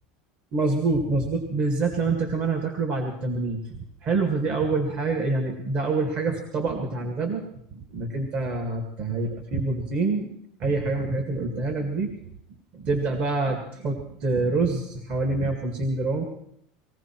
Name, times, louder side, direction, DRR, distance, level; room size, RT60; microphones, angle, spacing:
voice 1, 0.5-3.6 4.0-10.3 10.6-12.2 12.7-16.3, right 3 dB, 40° right, 4 dB, 1.9 m, -26 dB
20.5 x 15.5 x 4.5 m, 0.72 s
supercardioid pair, 145°, 3 cm